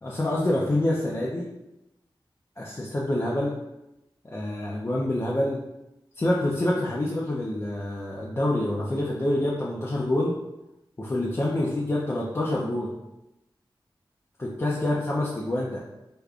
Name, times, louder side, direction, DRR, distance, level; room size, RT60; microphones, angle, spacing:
voice 1, 0.0-1.5 2.6-3.6 4.2-5.6 6.2-10.4 11.0-12.9 14.4-15.8, left 1 dB, 30° left, -5 dB, 0.5 m, -26 dB
5.0 x 2.2 x 2.3 m, 0.93 s
wide cardioid pair, 95°, 9 cm